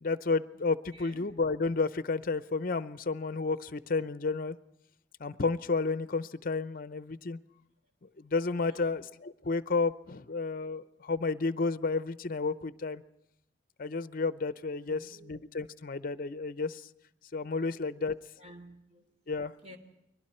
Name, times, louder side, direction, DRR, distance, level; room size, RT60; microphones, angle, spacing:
voice 1, 0.0-4.6 5.2-7.4 8.2-13.0 13.8-16.8 17.3-18.2 19.3-19.5, left 4 dB, 50° left, 14 dB, 0.7 m, -31 dB
voice 2, 8.7-9.0 14.8-15.3 18.4-19.0 19.6-19.8, equal, 40° right, 5 dB, 3.3 m, -51 dB
29.5 x 22.0 x 4.4 m, 0.83 s
head